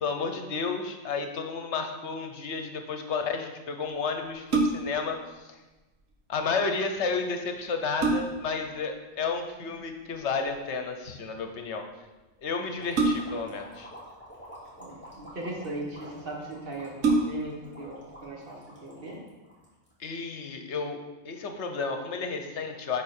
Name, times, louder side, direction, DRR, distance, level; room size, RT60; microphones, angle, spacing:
voice 1, 0.0-5.2 5.4-5.5 6.3-11.8 12.4-13.9 20.0-21.0 21.2-23.0, left 4 dB, 65° left, 5 dB, 1.1 m, -32 dB
sound 1, 4.3-5.1 7.1-7.2 7.6-8.6 10.1-10.5 12.9-13.6 14.5-15.2 16.0-16.1 16.4-16.5 16.9-17.6 18.1-18.2, right 3 dB, 90° right, 1.4 m, -27 dB
sound 2, 12.8-20.1, equal, 10° left, 2.6 m, -48 dB
voice 2, 14.8-19.2, right 1 dB, 50° right, -2 dB, 1.7 m, -39 dB
8.5 x 5.6 x 4.3 m, 1.1 s
omnidirectional pair, 1.3 m